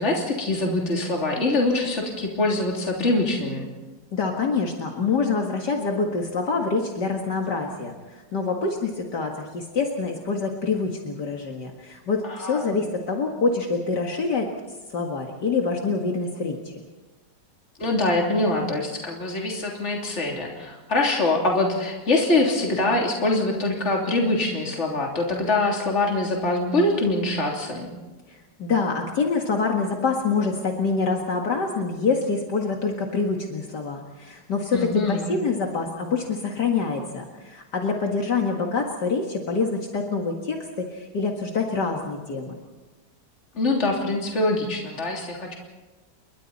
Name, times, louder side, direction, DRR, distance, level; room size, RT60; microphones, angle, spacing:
voice 1, 0.0-3.7 12.3-12.8 17.8-27.9 34.7-35.3 43.6-45.5, left 2 dB, 40° left, -1 dB, 3.5 m, -24 dB
voice 2, 4.1-14.5 14.9-16.8 28.3-42.5, left 4 dB, 65° left, 1 dB, 2.5 m, -26 dB
29.0 x 24.0 x 4.2 m, 1.2 s
omnidirectional pair, 1.9 m